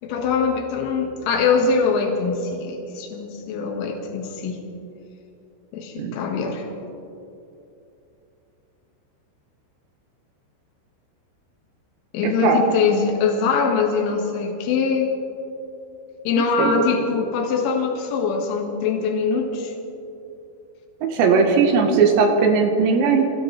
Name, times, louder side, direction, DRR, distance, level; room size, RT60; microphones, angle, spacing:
voice 1, 0.0-4.6 5.7-6.7 12.1-15.1 16.3-19.7, left 5 dB, 70° left, 1 dB, 4.0 m, -23 dB
voice 2, 12.2-12.6 16.6-16.8 21.0-23.3, right 5 dB, 70° right, 3 dB, 3.1 m, -18 dB
26.0 x 16.5 x 3.3 m, 2.7 s
omnidirectional pair, 5.8 m